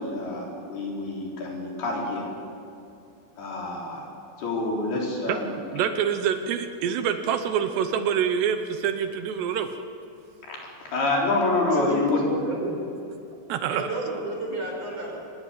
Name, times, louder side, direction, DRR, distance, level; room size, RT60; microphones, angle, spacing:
voice 1, 0.0-2.3 3.4-4.1 4.4-5.5 10.5-12.4, left 2 dB, 60° left, -2 dB, 6.1 m, -27 dB
voice 2, 5.7-9.7 13.5-13.8, right 8 dB, 80° right, 8 dB, 3.1 m, -26 dB
voice 3, 12.4-12.8 13.7-15.1, right 2 dB, 35° right, -1 dB, 6.1 m, -31 dB
25.0 x 20.0 x 8.3 m, 2.6 s
omnidirectional pair, 5.0 m